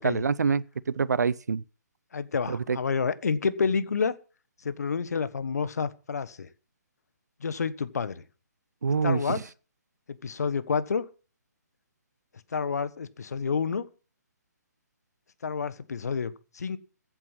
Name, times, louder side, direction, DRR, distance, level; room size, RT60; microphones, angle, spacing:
voice 1, 0.0-1.6 2.5-2.8 8.8-9.4, right 5 dB, 70° right, 0.6 m, -26 dB
voice 2, 2.1-4.2 4.6-6.5 7.4-8.2 9.0-9.4 10.1-11.0 12.5-13.8 15.4-16.8, left 5 dB, 60° left, 1.4 m, -29 dB
15.0 x 8.8 x 5.9 m
figure-of-eight pair, 140°, 10 cm